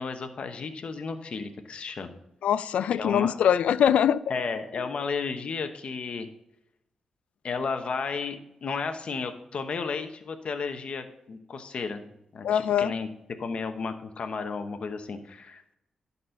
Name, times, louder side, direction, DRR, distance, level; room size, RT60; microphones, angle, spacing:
voice 1, 0.0-2.2 2.9-3.3 4.3-6.3 7.4-13.1 13.4-15.8, left 4 dB, 60° left, 7 dB, 1.0 m, -33 dB
voice 2, 2.4-4.2 12.4-12.9, left 9 dB, 85° left, 16 dB, 0.3 m, -23 dB
11.5 x 4.3 x 5.2 m, 0.81 s
cardioid pair, 65°, 2 cm